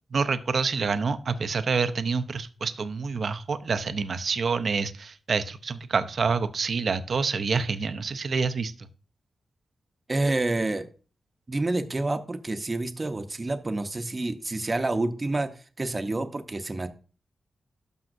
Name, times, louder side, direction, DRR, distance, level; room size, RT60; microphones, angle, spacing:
voice 1, 0.1-8.7, right 5 dB, 60° right, 11 dB, 0.6 m, -27 dB
voice 2, 10.1-10.9 11.5-15.5 15.8-16.9, right 2 dB, 25° right, 8 dB, 0.8 m, -28 dB
12.0 x 5.4 x 2.6 m, 0.37 s
wide cardioid pair, 105°, 0 cm